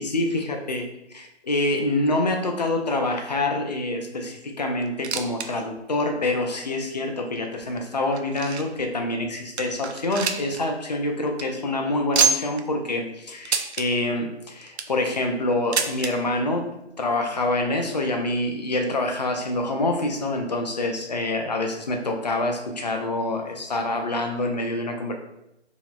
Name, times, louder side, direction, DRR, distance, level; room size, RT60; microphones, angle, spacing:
voice 1, 0.0-16.7 17.0-25.2, left 2 dB, 40° left, 3 dB, 0.4 m, -26 dB
sound 1, 4.8-5.5 5.8-5.9 6.5-6.6 7.4-8.8 9.2-9.3 9.6-10.6 10.9-11.0 11.3-11.4 12.1-12.6 13.4-13.9 14.5-15.0 15.7-16.1 17.1-17.2 17.4-17.5 18.3-18.4, right 5 dB, 70° right, 0.5 m, -26 dB
3.7 x 2.9 x 2.2 m, 0.86 s
figure-of-eight pair, 150°, 34 cm